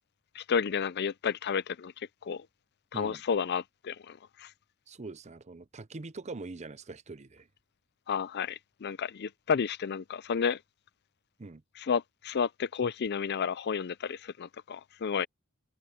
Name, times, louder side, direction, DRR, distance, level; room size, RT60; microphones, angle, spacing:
voice 1, 0.3-1.9 2.2-2.4 2.9-4.5 8.1-10.6 11.9-15.3, left 6 dB, 50° left, 0.5 m, -31 dB
voice 2, 4.9-7.5 11.4-11.6, right 3 dB, 35° right, 0.7 m, -43 dB
head